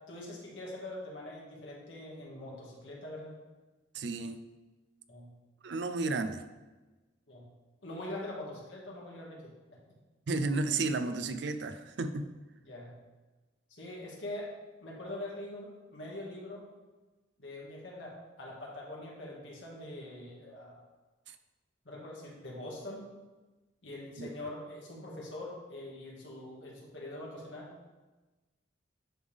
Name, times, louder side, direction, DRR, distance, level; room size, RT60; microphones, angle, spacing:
voice 1, 0.1-3.4 5.1-5.3 7.3-7.5 7.8-9.5 12.6-12.9 13.7-14.5 14.8-16.6 17.4-20.8 21.9-23.1 23.8-27.9, left 1 dB, 90° left, -4 dB, 1.9 m, -43 dB
voice 2, 3.9-4.4 5.6-6.4 10.3-12.3 21.3-21.4 24.2-24.3, right 3 dB, 70° right, 10 dB, 0.4 m, -32 dB
10.0 x 3.5 x 3.5 m, 1.2 s
head